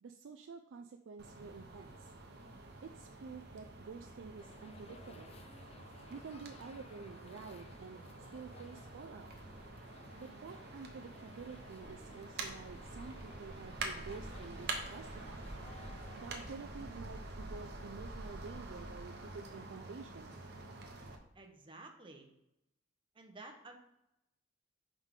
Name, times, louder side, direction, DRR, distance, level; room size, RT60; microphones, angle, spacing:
voice 1, 0.0-2.1 2.8-5.4 6.1-8.0 8.3-9.3 10.2-15.5 16.2-20.4, right 5 dB, 75° right, 5 dB, 0.4 m, -49 dB
sound 1, 1.2-21.2, right 2 dB, 60° right, 0.9 m, -47 dB
sound 2, 4.4-16.5, left 4 dB, 35° left, 0.4 m, -59 dB
voice 2, 21.3-22.3 23.1-23.8, right 2 dB, 25° right, 4 dB, 0.8 m, -52 dB
5.5 x 4.7 x 3.7 m, 0.87 s
head